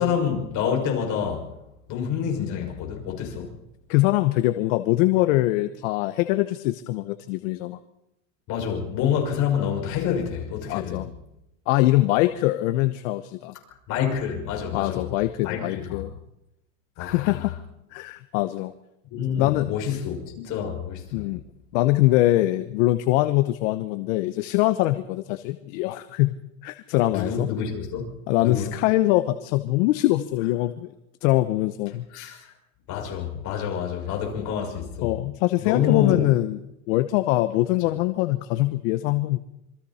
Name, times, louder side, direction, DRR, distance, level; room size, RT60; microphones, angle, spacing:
voice 1, 0.0-1.5 1.9-3.5 8.5-11.0 13.9-15.1 15.4-16.0 17.0-17.5 19.1-21.3 27.0-28.1 28.4-28.7 32.1-32.5 32.9-35.1 35.6-36.3, left 8 dB, 45° left, 1 dB, 6.2 m, -27 dB
voice 2, 3.9-7.8 10.7-11.1 11.7-13.5 14.7-16.1 17.0-17.5 17.9-18.7 19.4-20.0 21.1-21.4 21.7-26.3 26.6-27.5 28.3-30.9 31.2-32.0 35.0-36.6 36.9-39.4, left 17 dB, 65° left, 11 dB, 1.1 m, -23 dB
27.0 x 23.5 x 4.3 m, 0.87 s
supercardioid pair, 150°, 42 cm